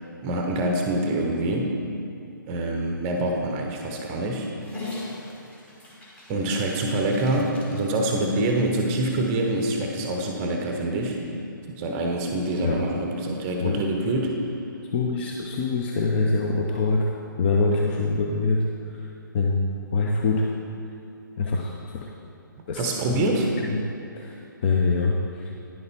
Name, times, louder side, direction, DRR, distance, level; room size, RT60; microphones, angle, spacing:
voice 1, 0.2-1.7 2.5-4.5 6.3-11.2 11.7-14.3 22.8-23.5, right 1 dB, 20° right, 1 dB, 0.7 m, -25 dB
Dog, 4.6-9.9, left 2 dB, 10° left, 1.3 m, -42 dB
voice 2, 14.9-19.1 19.3-20.5 21.4-22.1 22.7-23.3 23.7-23.8 24.1-25.5, left 3 dB, 30° left, -1 dB, 0.6 m, -25 dB
10.0 x 6.6 x 4.2 m, 2.7 s
figure-of-eight pair, 135°, 11 cm